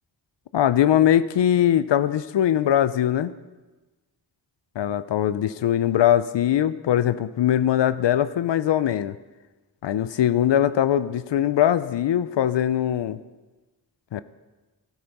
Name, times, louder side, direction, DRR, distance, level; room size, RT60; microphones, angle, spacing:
voice 1, 0.5-3.3 4.8-9.2 9.8-13.2 14.1-14.2, left 11 dB, 80° left, 15 dB, 0.6 m, -21 dB
13.0 x 12.5 x 5.4 m, 1.2 s
wide cardioid pair, 90°, 42 cm